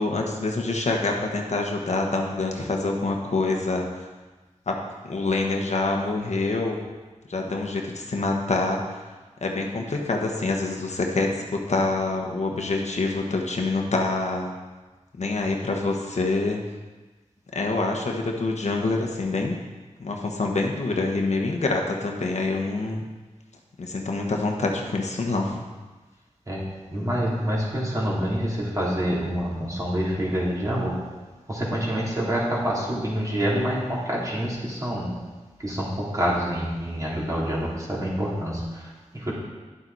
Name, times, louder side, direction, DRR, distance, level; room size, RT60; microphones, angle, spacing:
voice 1, 0.0-4.1 4.7-4.8 5.1-6.8 7.3-8.8 9.4-14.5 15.2-16.6 17.5-19.6 20.0-23.0 23.8-25.6, left 3 dB, 70° left, 1 dB, 1.3 m, -26 dB
voice 2, 26.5-31.0 31.5-35.2 35.6-39.3, equal, 25° right, -6 dB, 3.3 m, -27 dB
10.5 x 7.6 x 4.1 m, 1.3 s
wide cardioid pair, 60°, 12 cm